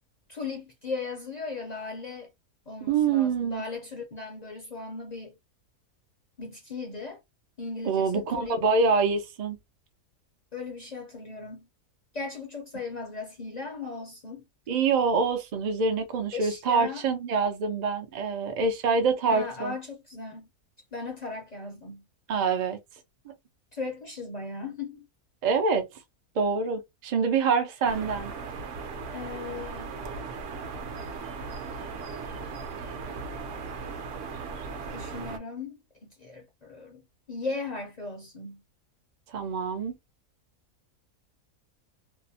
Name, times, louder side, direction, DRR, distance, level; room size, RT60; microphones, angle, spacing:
voice 1, 0.3-2.3 2.7-5.3 6.4-7.2 7.6-8.6 10.5-11.7 12.1-14.4 16.3-17.0 19.3-20.5 20.9-22.1 23.7-25.1 29.1-30.0 34.9-37.0 37.3-38.6, left 3 dB, 55° left, 0.4 m, -37 dB
voice 2, 2.9-3.6 7.9-9.6 14.7-19.7 22.3-22.8 23.3-23.4 25.4-25.9 26.4-28.3 39.3-39.9, right 5 dB, 85° right, 0.3 m, -25 dB
sound 1, 27.8-35.4, right 4 dB, 65° right, 0.8 m, -37 dB
2.7 x 2.0 x 2.7 m
omnidirectional pair, 1.6 m